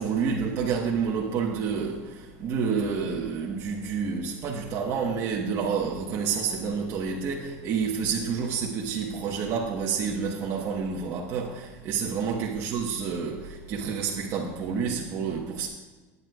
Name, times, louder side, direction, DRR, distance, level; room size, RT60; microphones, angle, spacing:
voice 1, 0.0-15.7, right 6 dB, 35° right, 1.1 m, -29 dB
17.0 x 9.6 x 2.3 m
cardioid pair, 165°, 8 cm